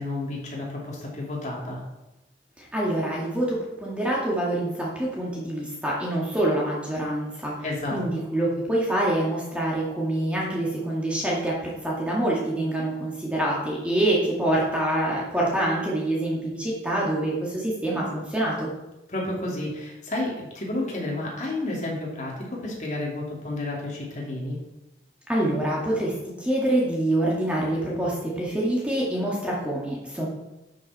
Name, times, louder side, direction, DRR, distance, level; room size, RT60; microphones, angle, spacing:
voice 1, 0.0-1.8 7.6-8.0 19.1-24.6, left 2 dB, 40° left, -3 dB, 2.8 m, -31 dB
voice 2, 2.6-7.5 7.9-18.7 25.3-30.3, right 1 dB, 5° right, -5 dB, 2.1 m, -26 dB
12.0 x 6.7 x 4.3 m, 0.98 s
head